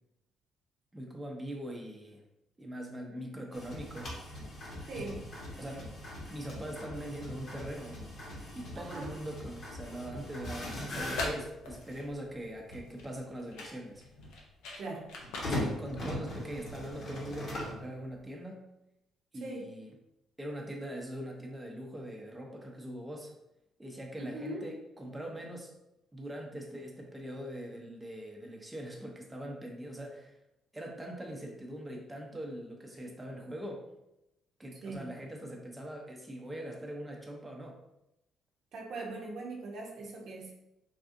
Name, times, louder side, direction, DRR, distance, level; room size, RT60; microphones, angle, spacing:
voice 1, 0.9-2.2 2.6-4.1 5.6-5.9 6.3-8.0 8.5-14.0 15.5-18.6 19.3-19.9 20.4-23.3 23.8-25.7 26.1-30.4 30.7-33.8 34.6-37.8, right 1 dB, 15° right, 0 dB, 0.6 m, -42 dB
sound 1, 3.5-12.0 12.7-12.8 15.2-17.8, left 1 dB, 55° left, 1.1 m, -40 dB
voice 2, 4.9-5.3 8.8-9.2 14.8-15.1 19.4-19.8 24.2-24.7 34.8-35.1 38.7-40.5, right 2 dB, 65° right, -1 dB, 0.6 m, -41 dB
sound 2, 10.9-16.9, left 2 dB, 85° left, 0.6 m, -43 dB
3.4 x 2.4 x 2.6 m, 0.88 s
supercardioid pair, 70°, 0 cm